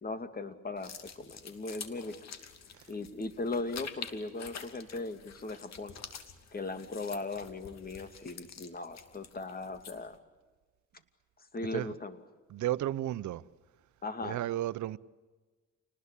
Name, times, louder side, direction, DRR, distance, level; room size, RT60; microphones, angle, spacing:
voice 1, 0.0-2.2 2.9-6.0 6.5-10.2 11.5-12.2 14.0-14.4, left 3 dB, 30° left, 2.6 m, -38 dB
sound 1, 0.8-10.2, left 7 dB, 60° left, 2.7 m, -48 dB
voice 2, 12.5-13.4 14.2-15.0, right 14 dB, 75° right, 0.9 m, -33 dB
29.0 x 20.0 x 8.5 m
cardioid pair, 90°, 30 cm